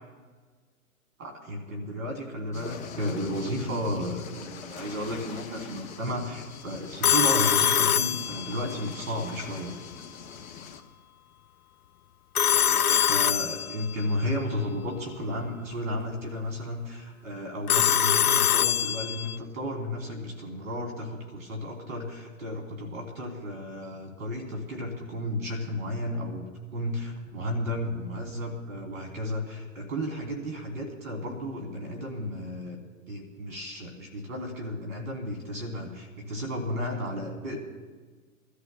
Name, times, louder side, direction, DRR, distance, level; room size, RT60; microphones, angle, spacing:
voice 1, 1.2-9.7 12.5-32.8 33.1-37.6, equal, 65° right, 2 dB, 3.4 m, -33 dB
sound 1, 2.5-10.8, left 7 dB, 15° left, 0.6 m, -42 dB
Telephone, 7.0-8.8 12.3-14.0 17.7-19.4, left 10 dB, 85° left, 0.5 m, -23 dB
25.5 x 13.0 x 2.3 m, 1.4 s
hypercardioid pair, 125°, 43 cm